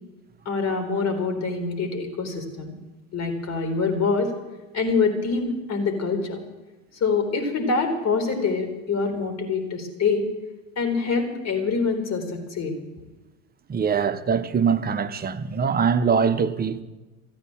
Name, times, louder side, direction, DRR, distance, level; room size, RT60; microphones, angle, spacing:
voice 1, 0.5-2.7 3.1-4.3 4.7-6.4 7.0-10.3 10.8-12.8, left 4 dB, 35° left, 4.0 m, -25 dB
voice 2, 13.7-16.8, right 6 dB, 20° right, 1.0 m, -23 dB
14.5 x 9.6 x 8.9 m
hypercardioid pair, 80°, 44 cm